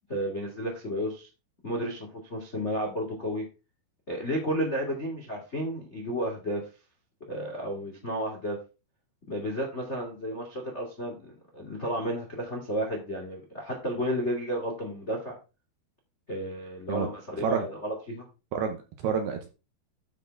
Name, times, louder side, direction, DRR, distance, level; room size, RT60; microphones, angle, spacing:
voice 1, 0.1-1.3 1.6-3.5 4.1-6.6 7.3-8.6 9.3-15.4 16.3-18.2, equal, 75° left, 0 dB, 0.6 m, -32 dB
voice 2, 18.5-19.5, right 6 dB, 80° right, 6 dB, 2.4 m, -29 dB
12.0 x 4.7 x 4.6 m, 0.30 s
omnidirectional pair, 5.6 m